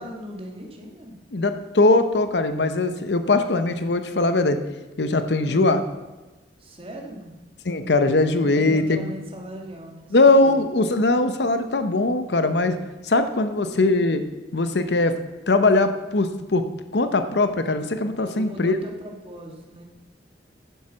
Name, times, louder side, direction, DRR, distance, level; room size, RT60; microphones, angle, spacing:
voice 1, 0.0-1.2 5.4-5.7 6.6-7.4 8.4-10.7 13.5-13.9 18.3-19.8, equal, 35° right, 2 dB, 1.8 m, -39 dB
voice 2, 1.3-4.6 5.0-5.8 7.7-9.1 10.1-12.8 13.0-14.2 14.5-15.1 15.5-16.7 16.9-18.7, left 2 dB, 70° left, 9 dB, 0.9 m, -20 dB
10.5 x 7.5 x 6.2 m, 1.1 s
head